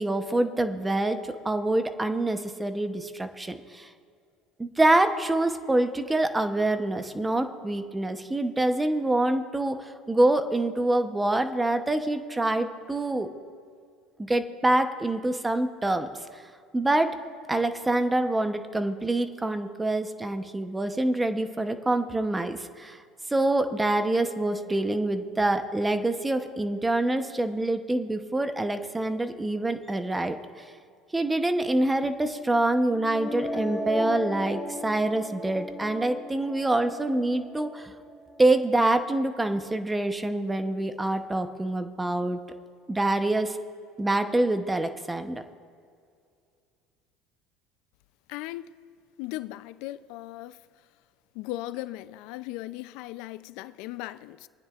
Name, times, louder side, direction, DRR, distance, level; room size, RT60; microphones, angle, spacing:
voice 1, 0.0-3.9 4.6-13.3 14.3-16.1 16.7-17.2 17.5-23.0 23.3-30.4 31.1-37.9 38.4-42.4 42.9-43.6 44.0-45.4, right 2 dB, 10° right, 0.9 m, -26 dB
sound 1, 32.9-38.9, left 1 dB, 20° left, 2.4 m, -36 dB
voice 2, 48.3-48.7 49.2-50.6 51.3-54.5, left 16 dB, 75° left, 0.5 m, -37 dB
27.5 x 9.6 x 2.5 m
supercardioid pair, 105°, 0 cm